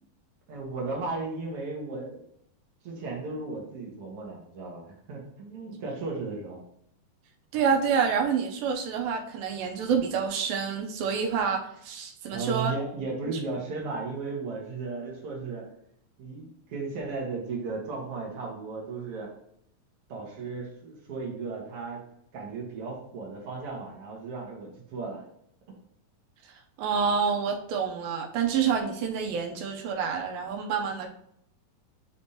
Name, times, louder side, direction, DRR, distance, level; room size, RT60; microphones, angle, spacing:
voice 1, 0.5-2.3 2.8-6.6 12.3-15.6 16.2-19.3 20.1-22.0 22.3-25.2, right 4 dB, 65° right, -3 dB, 1.5 m, -35 dB
voice 2, 7.5-12.7 13.3-13.4 26.8-31.1, right 6 dB, 80° right, 3 dB, 2.3 m, -28 dB
10.0 x 3.5 x 2.8 m, 0.72 s
omnidirectional pair, 4.3 m